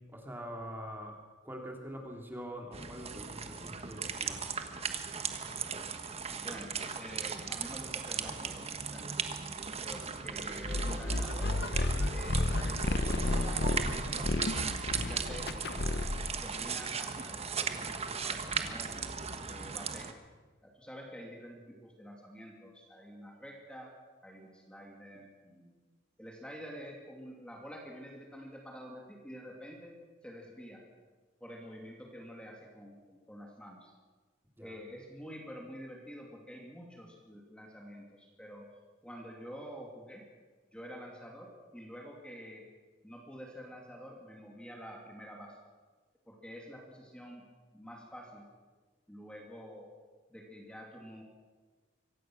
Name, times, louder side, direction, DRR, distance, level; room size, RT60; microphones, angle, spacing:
voice 1, 0.1-4.4 10.0-10.1 34.6-34.8, equal, 10° right, 1 dB, 2.9 m, -44 dB
sound 1, 2.7-20.1, right 5 dB, 35° right, 1.3 m, -37 dB
voice 2, 6.3-9.3 9.8-11.6 12.1-14.3 15.0-18.0 18.2-19.0 19.5-20.1 20.6-23.9 24.2-25.7 26.2-29.9 30.2-30.8 31.4-33.9 34.6-38.7 39.0-40.2 40.7-42.6 43.0-45.6 46.3-47.4 47.7-48.5 49.1-49.9 50.3-51.2, equal, 5° left, -1 dB, 2.7 m, -48 dB
sound 2, 10.6-16.4, left 2 dB, 55° left, 1.0 m, -32 dB
24.5 x 17.0 x 6.3 m, 1.4 s
head